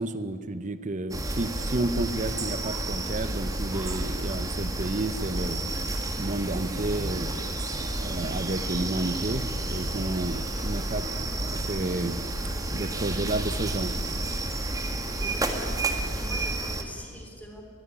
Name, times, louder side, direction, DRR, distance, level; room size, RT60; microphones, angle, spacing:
voice 1, 0.0-5.6 6.2-7.3 7.8-12.2 12.7-13.9, right 2 dB, 35° right, 12 dB, 0.8 m, -31 dB
sound 1, 1.1-16.8, right 2 dB, 15° right, 1.7 m, -31 dB
voice 2, 15.2-17.6, equal, 5° left, 2 dB, 3.5 m, -44 dB
21.5 x 15.5 x 9.9 m, 2.4 s
head